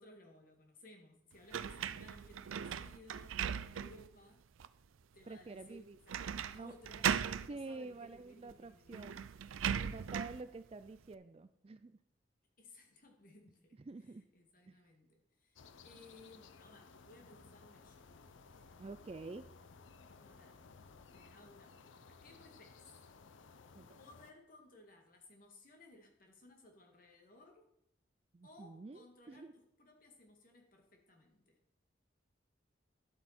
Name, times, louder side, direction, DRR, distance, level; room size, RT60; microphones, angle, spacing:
voice 1, 0.0-4.4 5.1-9.1 12.6-18.1 18.5-18.8 20.2-20.6 21.1-22.8 24.0-27.7 28.4-31.6, left 1 dB, 45° left, 2 dB, 2.0 m, -60 dB
sound 1, 1.5-4.1 4.6-4.7 6.1-6.6 6.8-7.5 8.5-8.6 8.9-10.4, right 8 dB, 90° right, 0.5 m, -38 dB
voice 2, 5.3-6.0 6.5-6.7 7.5-9.2 9.8-12.0 13.9-14.3 14.7-14.8 18.8-19.5 23.7-24.0 28.3-29.5, right 3 dB, 30° right, 12 dB, 0.3 m, -48 dB
sound 2, 15.6-24.3, left 4 dB, 75° left, 0.6 m, -58 dB
11.5 x 8.0 x 4.3 m, 0.75 s
head